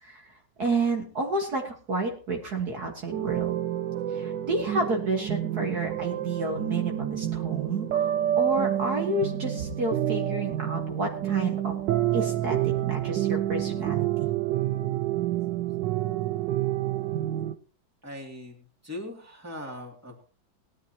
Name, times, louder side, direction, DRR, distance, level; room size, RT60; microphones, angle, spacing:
voice 1, 0.0-3.6 4.1-11.8 12.1-14.3, right 2 dB, 55° right, 1 dB, 2.0 m, -30 dB
sound 1, 3.1-17.5, right 12 dB, 70° right, 1.3 m, -28 dB
voice 2, 18.0-20.1, left 1 dB, 10° right, 1 dB, 2.4 m, -40 dB
19.0 x 12.0 x 2.9 m, 0.40 s
omnidirectional pair, 2.2 m